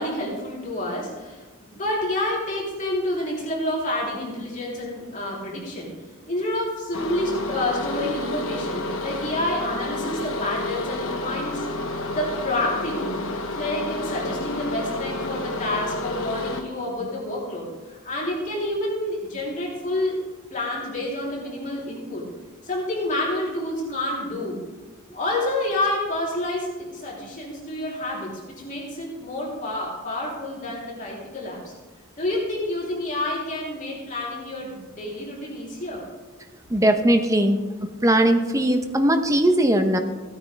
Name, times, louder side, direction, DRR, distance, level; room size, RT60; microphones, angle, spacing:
voice 1, 0.0-5.9 6.3-11.7 12.1-13.2 13.5-20.2 20.5-22.3 22.6-24.6 25.1-31.7 32.2-36.0, left 1 dB, 40° left, -4 dB, 3.5 m, -28 dB
sound 1, 6.9-16.6, left 2 dB, 75° left, 1.2 m, -30 dB
voice 2, 36.7-37.6 38.0-40.0, right 1 dB, 15° right, 6 dB, 0.9 m, -19 dB
16.5 x 9.5 x 3.4 m, 1.3 s
head